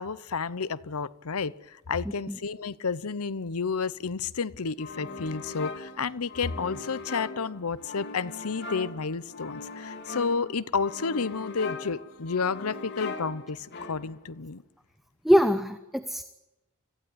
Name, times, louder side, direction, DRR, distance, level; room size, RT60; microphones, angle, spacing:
voice 1, 0.0-14.6, left 5 dB, 75° left, 17 dB, 0.8 m, -31 dB
sound 1, 4.8-14.3, left 3 dB, 50° left, 2.2 m, -40 dB
voice 2, 15.2-16.2, equal, ahead, 9 dB, 0.8 m, -22 dB
25.5 x 15.5 x 9.5 m, 1.0 s
head